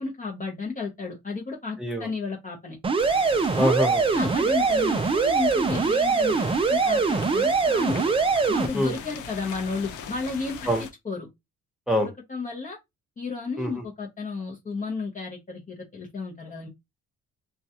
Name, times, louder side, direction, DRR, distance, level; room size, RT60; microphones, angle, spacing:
voice 1, 0.0-2.8 4.1-8.1 8.5-10.7 11.0-11.3 12.0-12.8 13.2-16.7, left 4 dB, 25° left, 0.7 m, -33 dB
voice 2, 1.8-2.1 3.6-4.1 8.7-9.0 10.7-10.8 11.9-12.1 13.6-13.8, equal, ahead, 1.0 m, -24 dB
sound 1, 2.8-8.7, right 4 dB, 20° right, 0.3 m, -23 dB
sound 2, 3.0-10.9, left 6 dB, 90° left, 0.6 m, -40 dB
2.3 x 2.2 x 2.8 m
cardioid pair, 90°, 30 cm